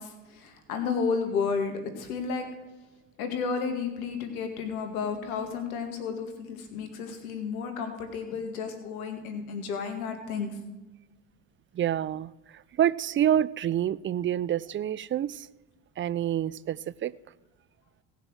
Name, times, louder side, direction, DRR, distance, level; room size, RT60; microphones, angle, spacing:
voice 1, 0.0-2.5 3.2-10.5, left 5 dB, 90° left, 6 dB, 2.2 m, -32 dB
voice 2, 11.7-15.5 16.0-17.1, right 10 dB, 30° right, 20 dB, 0.4 m, -28 dB
17.5 x 6.6 x 6.3 m, 1.1 s
supercardioid pair, 75°, 41 cm